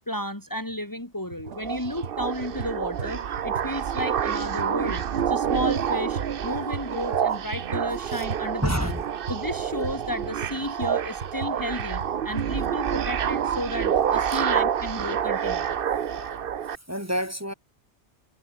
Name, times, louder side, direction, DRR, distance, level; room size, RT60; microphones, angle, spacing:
voice 1, 0.0-9.0 9.3-15.7, left 1 dB, 15° left, 2.9 m, -33 dB
sound 1, 0.7-0.8 1.3-1.6 1.8-6.9 7.1-12.5, right 4 dB, 70° right, 2.3 m, -38 dB
sound 2, 1.5-16.8, right 8 dB, 55° right, 0.9 m, -28 dB
voice 2, 8.6-9.0 15.2-15.4 16.1-16.4 16.9-17.5, equal, 15° right, 4.1 m, -30 dB
omnidirectional pair, 1.2 m